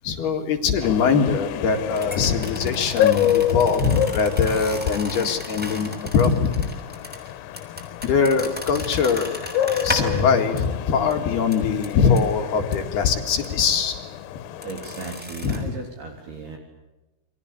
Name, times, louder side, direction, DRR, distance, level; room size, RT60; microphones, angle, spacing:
voice 1, 0.0-6.5 8.0-9.4 9.8-14.0 15.4-15.6, left 6 dB, 60° left, 4 dB, 3.6 m, -22 dB
sound 1, 0.8-15.2, left 11 dB, 85° left, 3.7 m, -29 dB
sound 2, 1.9-10.3 10.6-10.7 11.1-11.2 11.5-12.2 12.7-12.8 13.4-13.5 14.6-15.6, left 1 dB, ahead, 5.4 m, -34 dB
voice 2, 14.6-16.6, right 3 dB, 55° right, 2 dB, 5.1 m, -36 dB
29.5 x 24.5 x 8.4 m, 1.0 s
omnidirectional pair, 5.8 m